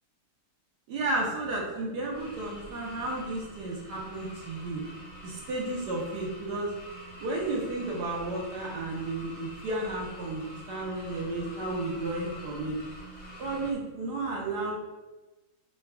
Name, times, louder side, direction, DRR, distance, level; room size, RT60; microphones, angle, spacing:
voice 1, 0.9-4.8 5.2-6.7 7.2-12.8 13.4-14.7, right 2 dB, 60° right, -2 dB, 1.2 m, -33 dB
sound 1, 2.1-13.7, equal, 35° left, 0.7 m, -46 dB
4.0 x 2.2 x 4.4 m, 1.1 s
omnidirectional pair, 2.3 m